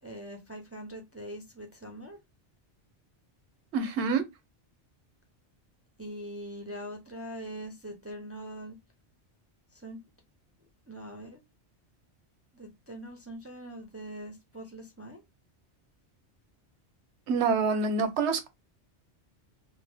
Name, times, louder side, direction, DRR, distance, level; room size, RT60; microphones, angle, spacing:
voice 1, 0.0-2.2 6.0-8.8 9.7-10.0 10.9-11.4 12.5-15.2, right 1 dB, 20° right, 0.3 m, -42 dB
voice 2, 3.7-4.2 17.3-18.5, right 4 dB, 80° right, 1.0 m, -26 dB
2.7 x 2.1 x 3.4 m
omnidirectional pair, 1.2 m